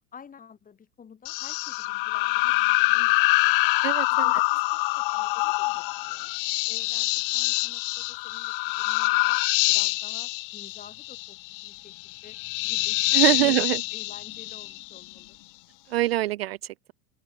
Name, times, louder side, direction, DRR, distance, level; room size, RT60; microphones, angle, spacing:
voice 1, 0.1-2.5 2.9-3.7 4.1-6.3 6.7-9.4 9.7-13.5 13.9-15.4, left 7 dB, 20° left, 8.0 m, -51 dB
sound 1, 1.3-15.1, left 26 dB, 35° left, 0.8 m, -25 dB
voice 2, 3.8-4.3 13.1-13.8 15.9-16.9, right 16 dB, 45° right, 0.5 m, -24 dB
open air
figure-of-eight pair, 100°, 44 cm